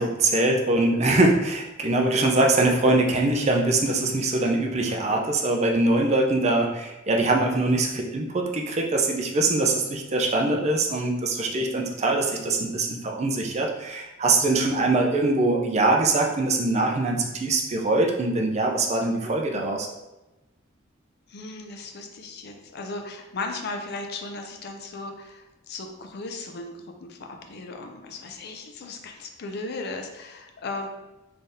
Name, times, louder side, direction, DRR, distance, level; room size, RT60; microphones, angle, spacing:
voice 1, 0.0-19.9, right 2 dB, 35° right, 1 dB, 0.4 m, -23 dB
voice 2, 21.3-27.2 27.5-30.9, left 3 dB, 50° left, 4 dB, 0.5 m, -36 dB
3.8 x 3.3 x 2.6 m, 1.0 s
head